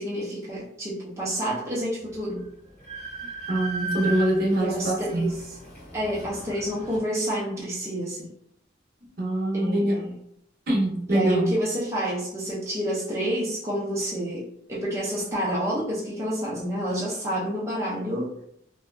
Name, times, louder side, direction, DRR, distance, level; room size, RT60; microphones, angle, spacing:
voice 1, 0.0-2.4 4.5-5.5 5.9-8.3 9.5-10.1 11.1-18.3, equal, 15° right, -8 dB, 0.5 m, -29 dB
Train, 2.0-2.1 2.4-7.0, right 3 dB, 35° left, 0.8 m, -37 dB
voice 2, 3.5-5.3 9.2-9.9 10.7-11.5, right 1 dB, 50° right, -3 dB, 0.7 m, -24 dB
2.6 x 2.3 x 2.2 m, 0.72 s
head